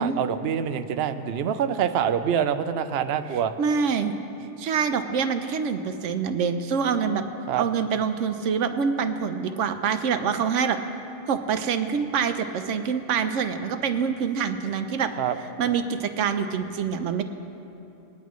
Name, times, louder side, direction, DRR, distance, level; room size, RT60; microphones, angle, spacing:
voice 1, 0.0-3.5 7.5-7.6 15.2-15.4, right 8 dB, 65° right, 9 dB, 0.8 m, -25 dB
voice 2, 3.6-4.2 4.6-7.2 7.5-10.8 11.3-15.1 15.6-17.2, right 6 dB, 85° right, 9 dB, 1.0 m, -25 dB
21.0 x 10.0 x 3.1 m, 2.8 s
omnidirectional pair, 1.2 m